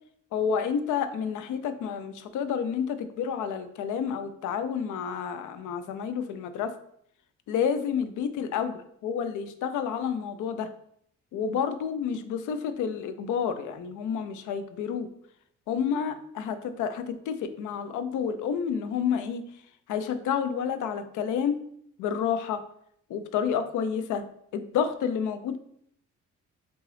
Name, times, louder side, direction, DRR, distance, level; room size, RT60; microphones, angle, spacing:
voice 1, 0.3-6.7 7.5-8.7 9.0-10.7 11.3-15.1 15.7-19.4 19.9-21.6 22.0-22.6 23.1-24.2 24.5-25.6, left 7 dB, 80° left, 10 dB, 0.5 m, -29 dB
3.8 x 3.6 x 3.2 m, 0.69 s
cardioid pair, 90°, 30 cm